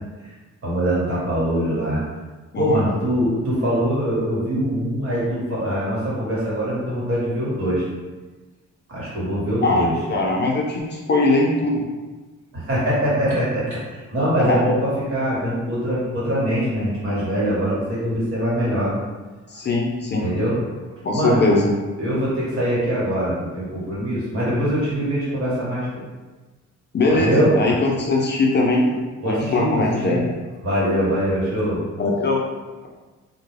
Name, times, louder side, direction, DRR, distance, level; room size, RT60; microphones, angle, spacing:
voice 1, 0.6-2.0 2.5-7.9 8.9-9.9 12.5-18.9 20.2-20.6 21.1-21.5 22.0-25.9 27.1-27.5 29.2-30.2 30.6-31.8, equal, 45° right, -7 dB, 1.3 m, -23 dB
voice 2, 9.6-11.8 14.5-14.6 19.5-20.3 21.0-21.7 26.9-28.9 29.3-30.2 32.0-32.4, left 2 dB, 35° left, -2 dB, 0.4 m, -20 dB
2.3 x 2.2 x 3.2 m, 1.3 s
cardioid pair, 90°, 30 cm